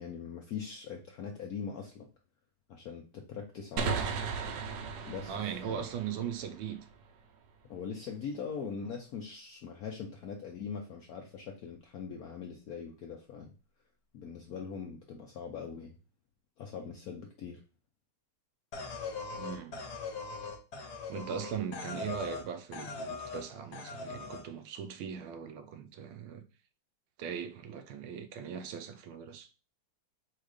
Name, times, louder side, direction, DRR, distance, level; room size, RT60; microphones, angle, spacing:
voice 1, 0.0-2.1 2.7-4.1 5.1-5.8 7.7-13.5 14.1-16.0 16.6-17.6, left 6 dB, 75° left, 0.8 m, -41 dB
sound 1, 3.8-7.2, right 5 dB, 70° right, 1.1 m, -36 dB
voice 2, 5.3-6.8 19.3-19.8 21.1-26.4 27.2-29.5, right 7 dB, 85° right, 1.5 m, -39 dB
sound 2, 18.7-22.5 22.7-23.5 23.7-24.4, left 4 dB, 60° left, 1.3 m, -40 dB
4.5 x 2.4 x 4.8 m
omnidirectional pair, 2.3 m